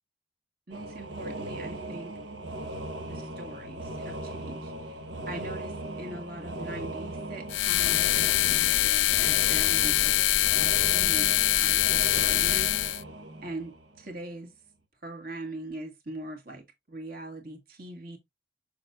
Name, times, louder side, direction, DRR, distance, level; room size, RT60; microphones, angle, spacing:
voice 1, 0.7-2.1 3.1-4.9 5.3-10.2 10.6-12.8 13.4-14.5 15.0-18.2, right 2 dB, 50° right, 2.1 m, -41 dB
sound 1, 0.7-14.2, right 1 dB, 70° right, 1.4 m, -38 dB
sound 2, 7.5-13.0, left 17 dB, 85° left, 0.3 m, -24 dB
6.8 x 6.6 x 2.6 m
head